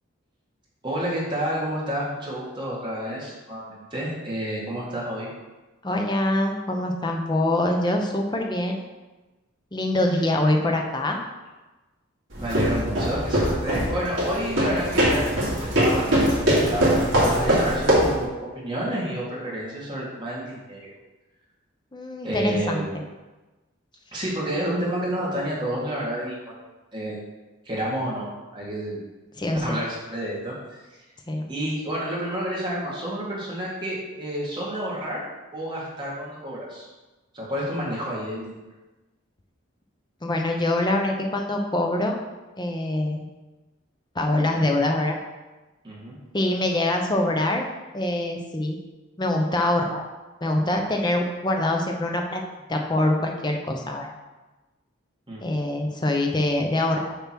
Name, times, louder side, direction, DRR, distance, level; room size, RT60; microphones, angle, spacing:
voice 1, 0.8-5.3 10.1-10.2 12.4-16.2 16.6-16.9 17.2-18.3 18.5-20.9 22.2-22.9 24.1-26.5 26.9-27.2 27.6-28.3 28.5-29.0 29.6-30.8 31.5-35.2 35.5-36.9 37.3-38.6 45.8-46.2 55.3-55.4, right 1 dB, 20° right, -6 dB, 1.6 m, -29 dB
voice 2, 5.8-8.8 9.7-11.2 21.9-22.8 29.4-29.8 31.3-31.4 40.2-42.1 42.6-43.3 44.1-45.2 46.3-47.6 47.9-48.8 49.2-50.1 50.4-52.4 52.7-54.1 55.4-57.2, left 1 dB, 20° left, 2 dB, 0.6 m, -24 dB
sound 1, 12.3-18.2, equal, 60° right, 2.0 m, -22 dB
6.8 x 3.0 x 5.9 m, 1.1 s
head